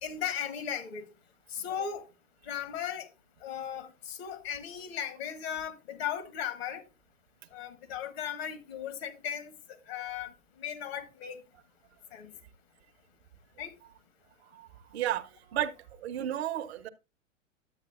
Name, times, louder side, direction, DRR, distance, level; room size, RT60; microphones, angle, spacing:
voice 1, 0.0-1.0 1.5-2.0 2.4-3.1 3.4-6.8 7.5-9.5 9.9-10.3 10.6-11.4 12.1-12.3 13.6-13.7, left 9 dB, 55° left, 1.4 m, -36 dB
voice 2, 14.5-15.7 16.0-16.9, right 11 dB, 55° right, 0.7 m, -33 dB
10.5 x 7.9 x 2.4 m
figure-of-eight pair, 105°, 39 cm